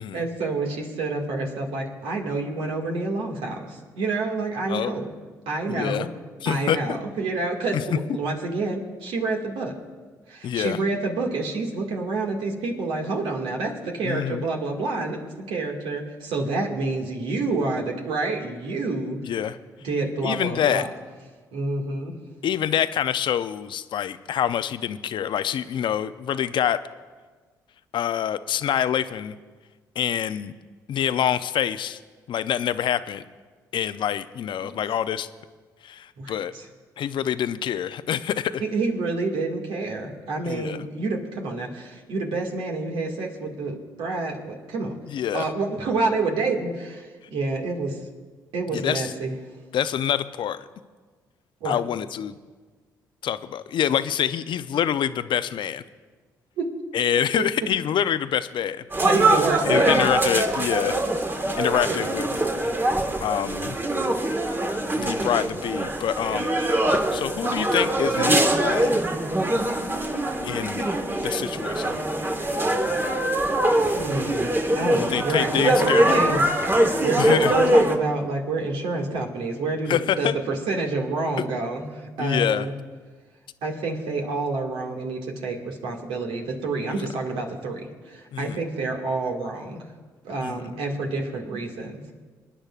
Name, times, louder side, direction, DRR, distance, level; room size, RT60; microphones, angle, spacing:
voice 1, 0.0-5.1 5.5-6.1 6.5-9.7 10.3-15.2 15.5-19.2 19.8-20.9 21.5-22.2 34.6-34.7 36.2-36.7 38.6-45.0 45.3-48.0 48.5-49.3 51.6-51.8 56.6-56.7 59.0-60.1 61.9-62.0 73.9-82.7 83.6-89.8 90.2-92.0, right 3 dB, 70° right, 0 dB, 2.0 m, -28 dB
voice 2, 5.7-6.1 6.4-7.0 7.7-7.8 10.4-10.8 14.0-14.5 19.2-19.6 20.2-20.9 22.4-26.8 27.9-29.4 30.0-30.5 30.9-32.0 32.3-33.2 33.7-35.3 35.8-36.5 37.0-38.6 40.4-40.8 45.1-45.5 48.7-49.1 49.7-50.6 51.6-52.4 53.2-55.8 56.9-58.8 59.7-61.0 61.6-62.3 63.2-63.8 65.0-66.5 67.1-69.1 70.4-70.8 71.2-72.0 75.1-76.5 77.2-77.5 79.9-80.4 82.2-82.7 88.3-88.6 90.4-90.6, left 9 dB, 60° left, 13 dB, 0.6 m, -26 dB
sound 1, 58.9-77.9, right 1 dB, 25° right, 1.4 m, -23 dB
26.5 x 10.0 x 2.5 m, 1.4 s
hypercardioid pair, 45°, 9 cm